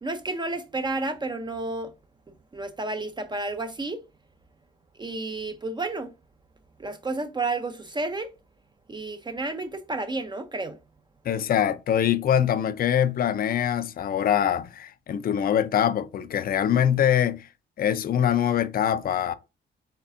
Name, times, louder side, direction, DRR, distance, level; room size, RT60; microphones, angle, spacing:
voice 1, 0.0-1.9 2.5-4.0 5.0-6.1 6.8-8.3 8.9-10.8, right 2 dB, 20° right, 0.5 m, -31 dB
voice 2, 11.2-17.5 17.8-19.3, left 9 dB, 50° left, 0.5 m, -23 dB
4.3 x 3.3 x 2.6 m
cardioid pair, 90°, 20 cm